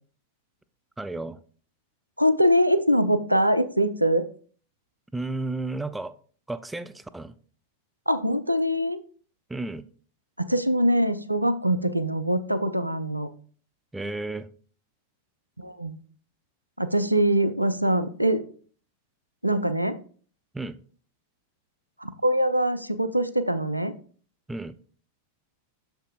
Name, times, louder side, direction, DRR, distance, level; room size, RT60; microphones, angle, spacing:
voice 1, 1.0-1.4 5.1-6.1 6.5-7.3 9.5-9.9 13.9-14.5 20.5-20.8 24.5-24.7, right 2 dB, 5° right, 11 dB, 0.4 m, -32 dB
voice 2, 2.2-4.3 8.1-9.0 10.4-13.3 15.6-16.0 16.8-18.4 19.4-20.0 22.0-23.9, equal, 90° right, 11 dB, 0.5 m, -23 dB
8.0 x 6.6 x 2.4 m, 0.43 s
figure-of-eight pair, 90°, 0 cm